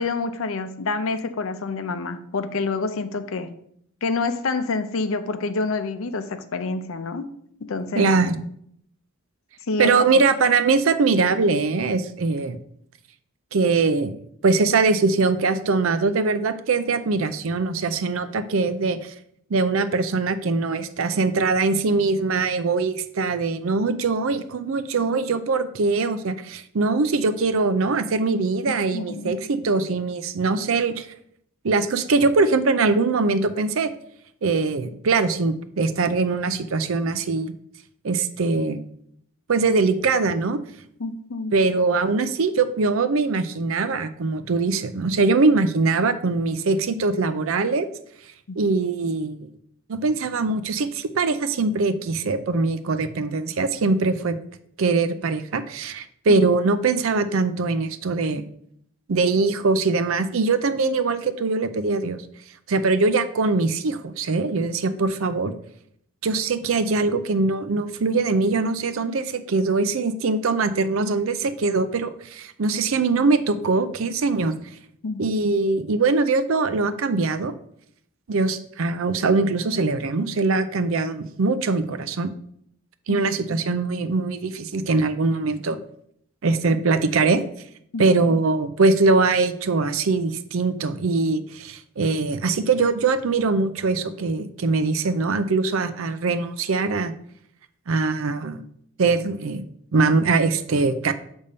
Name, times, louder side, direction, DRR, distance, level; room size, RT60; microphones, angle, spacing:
voice 1, 0.0-3.5 4.0-7.3 7.6-8.1 9.7-10.0 28.9-29.4 41.0-41.6 48.5-48.6 56.3-56.4 64.9-65.0 75.0-75.3 83.1-83.3 87.9-88.0, left 3 dB, 75° left, 0.6 m, -27 dB
voice 2, 7.9-8.4 9.8-12.6 13.5-14.2 14.4-19.1 19.5-31.1 31.6-33.9 34.4-37.5 38.0-38.8 39.5-40.6 41.5-47.9 48.6-49.5 49.9-54.4 54.8-58.4 59.1-62.2 62.7-65.5 66.2-74.5 75.2-77.5 78.3-82.3 83.1-85.8 86.4-87.4 88.0-97.1 97.9-98.6 99.0-99.6 99.9-101.1, right 3 dB, 75° right, 0.5 m, -22 dB
6.6 x 3.5 x 5.4 m
head